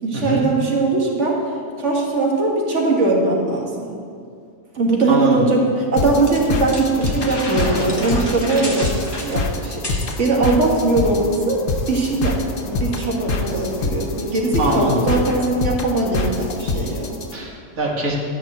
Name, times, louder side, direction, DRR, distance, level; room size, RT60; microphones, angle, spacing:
voice 1, 0.0-1.4 1.8-3.9 4.7-8.9 9.2-9.8 10.2-17.2, right 2 dB, 55° right, -1 dB, 2.1 m, -20 dB
voice 2, 5.1-5.4 14.6-14.9 17.3-18.2, right 2 dB, 80° right, -2 dB, 2.3 m, -23 dB
sound 1, 6.0-17.3, left 3 dB, 70° left, 1.3 m, -26 dB
sound 2, 6.3-10.2, left 1 dB, 20° left, 1.5 m, -29 dB
12.5 x 5.5 x 7.9 m, 2.3 s
omnidirectional pair, 1.4 m